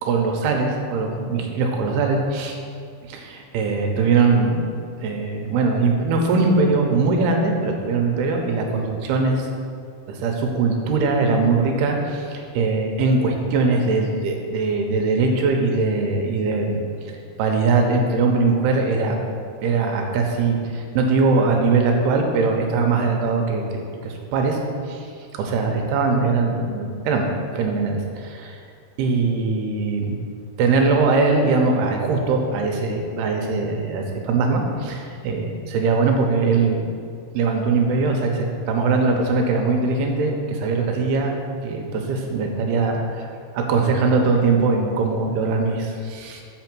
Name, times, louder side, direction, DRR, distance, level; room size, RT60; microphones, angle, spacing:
voice 1, 0.0-2.6 3.1-4.7 5.0-9.5 10.1-16.9 17.4-19.2 19.6-24.6 24.9-25.1 25.3-28.6 29.0-30.2 30.6-36.9 37.3-43.3 43.5-46.4, right 4 dB, 85° right, 2 dB, 2.9 m, -21 dB
6.9 x 5.5 x 6.1 m, 2.3 s
omnidirectional pair, 4.5 m